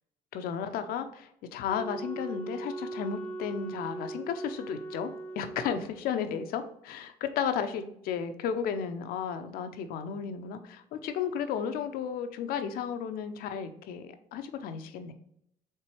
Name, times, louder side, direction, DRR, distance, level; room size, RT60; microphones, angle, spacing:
voice 1, 0.3-5.1 5.4-15.1, left 7 dB, 75° left, 8 dB, 0.5 m, -34 dB
Wind instrument woodwind instrument, 1.7-6.0, right 2 dB, 15° left, 0.7 m, -39 dB
4.4 x 3.3 x 3.1 m, 0.73 s
supercardioid pair, 75°, 16 cm